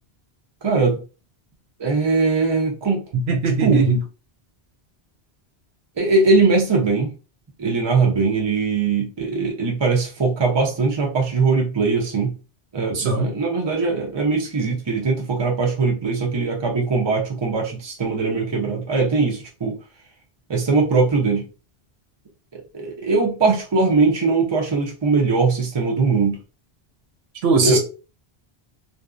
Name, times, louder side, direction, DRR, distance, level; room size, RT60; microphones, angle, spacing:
voice 1, 0.6-1.0 1.8-3.0 3.6-3.8 6.0-7.1 7.6-12.3 12.7-19.8 20.5-21.5 22.5-26.4 27.6-27.8, right 4 dB, 30° right, 0.6 m, -20 dB
voice 2, 3.3-4.0 12.9-13.3 27.4-27.8, right 4 dB, 75° right, 0.9 m, -19 dB
2.6 x 2.1 x 2.4 m
omnidirectional pair, 1.1 m